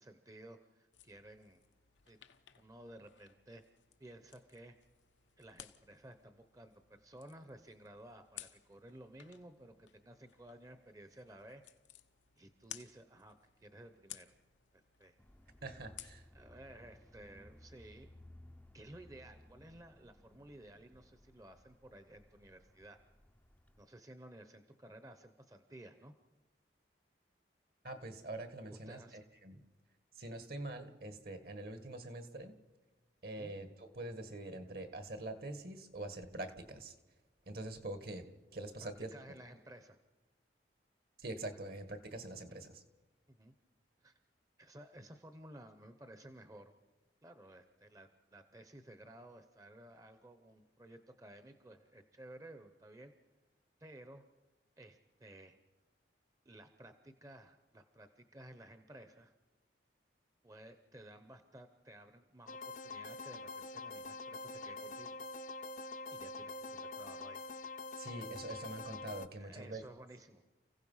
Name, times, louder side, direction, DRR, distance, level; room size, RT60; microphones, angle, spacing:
voice 1, 0.0-1.6 2.0-2.2 2.6-3.6 4.0-4.8 5.4-11.6 12.4-14.3 14.7-15.2 16.3-18.1 18.7-23.0 23.8-26.1 28.7-29.2 33.4-33.5 38.8-40.0 42.5-42.6 43.3-43.5 44.0-44.2 44.6-46.7 47.2-53.1 53.8-54.2 54.8-55.6 56.4-59.3 60.4-65.2 66.1-67.4 69.4-70.4, right 1 dB, 20° right, 8 dB, 0.8 m, -55 dB
sound 1, 0.9-16.3, left 12 dB, 90° left, 0.9 m, -57 dB
sound 2, 15.2-23.9, left 1 dB, 10° left, 0.6 m, -60 dB
voice 2, 15.6-16.2 27.8-29.6 30.2-32.6 33.2-36.9 37.5-39.1 41.2-42.8 68.0-69.8, right 2 dB, 55° right, 9 dB, 1.6 m, -45 dB
sound 3, 62.5-69.3, left 3 dB, 45° left, 0.7 m, -45 dB
29.0 x 16.0 x 5.6 m, 1.1 s
head